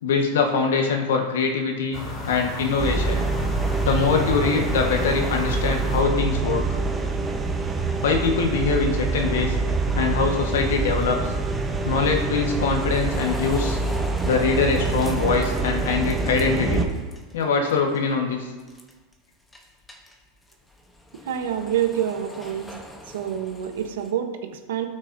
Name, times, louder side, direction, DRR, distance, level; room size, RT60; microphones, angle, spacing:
voice 1, 0.0-3.3 3.8-6.8 8.0-9.6 9.9-11.3 11.8-13.8 14.2-16.9 17.3-18.5, left 5 dB, 85° left, 3 dB, 1.3 m, -23 dB
sound 1, 1.9-6.0, left 2 dB, 35° left, 2.4 m, -34 dB
sound 2, 2.8-16.8, right 3 dB, 10° right, 0.9 m, -25 dB
sound 3, 10.6-17.4 17.7-18.1 18.6-19.1 19.5-24.1, left 1 dB, 10° left, 1.0 m, -41 dB
voice 2, 21.2-22.8 23.1-24.9, right 10 dB, 80° right, 6 dB, 1.0 m, -27 dB
12.5 x 6.3 x 2.7 m, 1.3 s
supercardioid pair, 130°, 0 cm